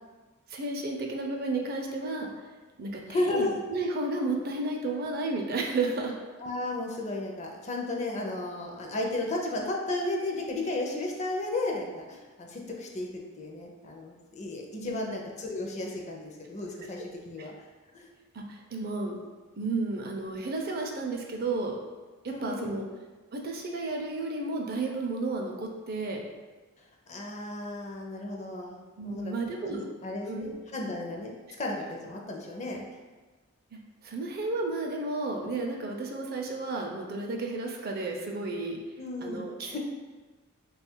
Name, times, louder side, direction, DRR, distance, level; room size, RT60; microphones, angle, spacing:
voice 1, 0.5-2.3 2.8-6.2 14.8-15.1 17.4-17.5 18.3-19.2 19.6-21.8 22.2-22.8 23.3-26.2 29.0-29.8 30.3-30.6 33.7-33.8 34.0-38.8 39.2-39.7, right 3 dB, 45° right, 1 dB, 0.5 m, -32 dB
voice 2, 3.1-3.6 6.4-17.5 17.9-18.1 22.3-22.9 27.1-28.8 29.0-29.3 29.6-32.8 39.0-39.8, left 2 dB, 35° left, 0 dB, 0.5 m, -34 dB
3.6 x 2.3 x 4.4 m, 1.3 s
head